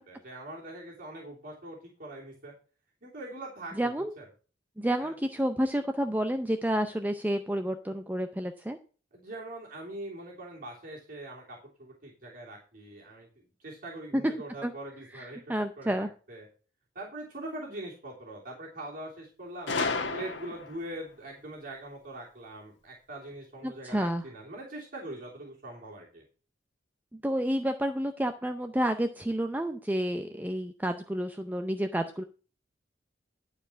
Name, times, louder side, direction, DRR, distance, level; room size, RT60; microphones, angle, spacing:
voice 1, 0.0-2.5 3.0-4.2 5.0-5.1 9.1-16.5 16.9-19.7 20.1-26.2, right 1 dB, 50° right, -3 dB, 3.2 m, -42 dB
voice 2, 3.8-4.1 4.8-8.8 14.1-14.2 14.6-14.7 15.1-16.1 23.6-24.2 27.1-32.2, equal, 10° right, 7 dB, 0.6 m, -30 dB
Gunshot gunfire, 19.7-20.9, left 3 dB, 80° left, 1.3 m, -31 dB
11.5 x 4.9 x 5.7 m, 0.37 s
head